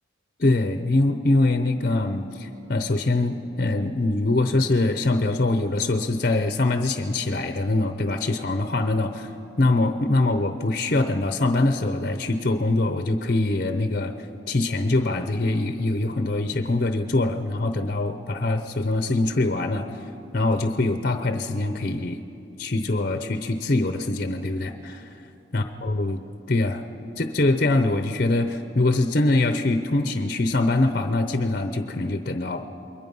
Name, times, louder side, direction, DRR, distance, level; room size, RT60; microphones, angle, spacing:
voice 1, 0.4-9.3 9.6-14.1 14.5-19.9 20.3-22.2 22.6-25.2 25.5-26.2 26.5-26.8 27.2-32.6, left 2 dB, 45° left, 8 dB, 0.7 m, -23 dB
28.0 x 22.0 x 5.5 m, 2.9 s
head